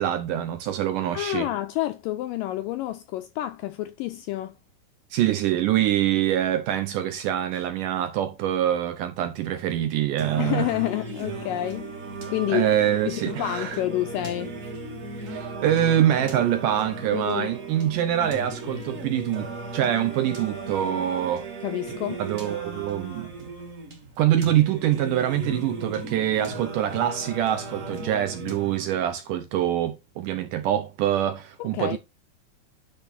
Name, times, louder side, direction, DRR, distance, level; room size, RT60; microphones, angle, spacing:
voice 1, 0.0-1.5 5.1-10.7 12.5-13.8 15.3-21.5 22.2-23.3 24.2-32.0, right 11 dB, 75° right, 2.0 m, -25 dB
voice 2, 1.1-4.5 10.4-11.9 12.3-12.7 13.1-14.5 17.1-17.5 21.6-22.2 31.6-32.0, left 15 dB, 85° left, 2.0 m, -29 dB
Singing, 10.2-29.2, right 2 dB, 45° right, 1.0 m, -36 dB
10.5 x 3.5 x 4.4 m
omnidirectional pair, 4.4 m